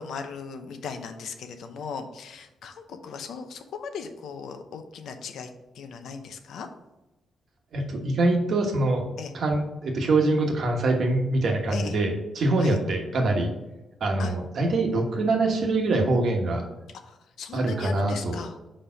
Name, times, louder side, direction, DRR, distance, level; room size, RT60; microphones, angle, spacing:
voice 1, 0.0-5.5 5.7-6.7 9.2-9.3 11.7-12.0 12.6-12.8 14.2-14.3 17.0-18.6, left 6 dB, 70° left, 7 dB, 0.7 m, -38 dB
voice 2, 7.7-9.1 9.3-13.5 14.0-16.6 17.5-18.4, right 2 dB, 50° right, 2 dB, 1.2 m, -24 dB
5.1 x 4.3 x 5.7 m, 0.99 s
wide cardioid pair, 175°, 0 cm